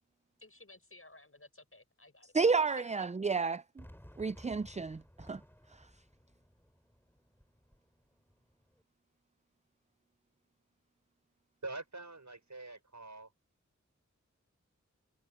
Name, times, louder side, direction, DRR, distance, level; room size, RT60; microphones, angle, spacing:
voice 1, 0.4-2.5 2.8-3.0, left 2 dB, 50° left, 6.7 m, -56 dB
voice 2, 2.3-3.8 4.2-5.4, right 4 dB, 25° right, 0.4 m, -31 dB
Fireworks, 3.8-8.8, equal, 5° left, 4.3 m, -57 dB
voice 3, 11.6-13.3, right 2 dB, 75° right, 6.6 m, -45 dB
wide cardioid pair, 45°, 29 cm